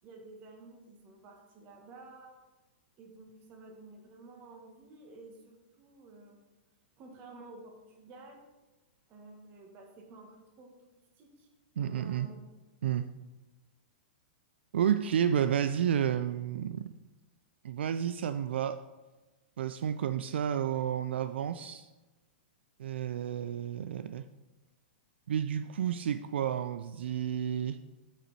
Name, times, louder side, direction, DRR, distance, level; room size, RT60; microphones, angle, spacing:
voice 1, 0.0-2.3 3.0-6.6 7.0-8.5 9.1-11.5 11.8-12.4, right 3 dB, 35° right, 2 dB, 1.8 m, -52 dB
voice 2, 11.8-12.3 12.8-13.1 14.7-16.9 17.6-18.8 19.6-21.9 22.8-24.2 25.3-27.8, right 9 dB, 75° right, 11 dB, 0.3 m, -31 dB
8.1 x 6.1 x 4.4 m, 1.1 s
hypercardioid pair, 135°, 6 cm